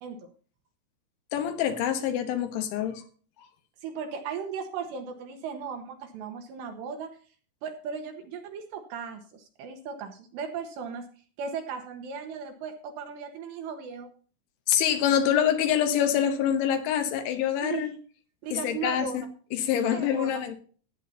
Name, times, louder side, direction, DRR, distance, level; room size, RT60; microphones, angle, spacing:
voice 1, 1.3-3.0 14.7-17.9 18.5-19.2 19.5-20.6, left 9 dB, 75° left, 3.3 m, -25 dB
voice 2, 3.8-7.2 7.6-11.1 11.4-14.1 17.6-18.0 18.4-19.3 19.9-20.6, right 6 dB, 75° right, 2.8 m, -37 dB
16.0 x 9.8 x 2.8 m
omnidirectional pair, 5.8 m